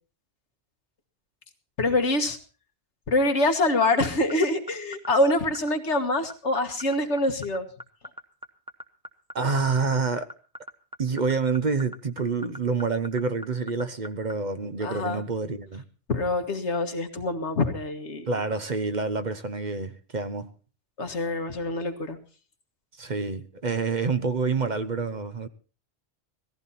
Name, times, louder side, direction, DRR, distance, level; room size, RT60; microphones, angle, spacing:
voice 1, 1.8-2.4 3.1-7.7 14.8-15.2 16.1-18.3 21.0-22.2, left 2 dB, 85° left, 1.9 m, -25 dB
sound 1, 3.8-14.3, equal, 5° right, 0.9 m, -39 dB
voice 2, 9.3-10.3 11.0-15.8 18.3-20.5 23.0-25.5, right 4 dB, 45° right, 1.0 m, -27 dB
18.0 x 14.5 x 4.2 m
omnidirectional pair, 1.1 m